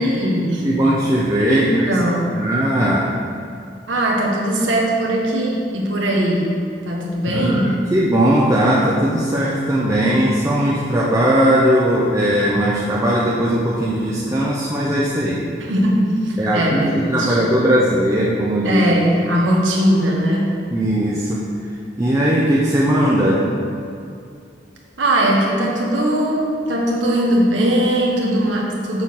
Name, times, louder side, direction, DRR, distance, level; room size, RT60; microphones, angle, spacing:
voice 1, 0.0-0.7 1.5-2.4 3.9-6.6 6.8-7.7 15.6-17.4 18.6-20.6 25.0-29.0, right 1 dB, 90° right, -2 dB, 1.3 m, -19 dB
voice 2, 0.6-1.9 2.4-3.1 7.3-15.4 16.4-18.8 20.7-21.4 21.9-23.4, right 1 dB, 15° right, -5 dB, 0.6 m, -18 dB
7.0 x 3.8 x 6.2 m, 2.4 s
head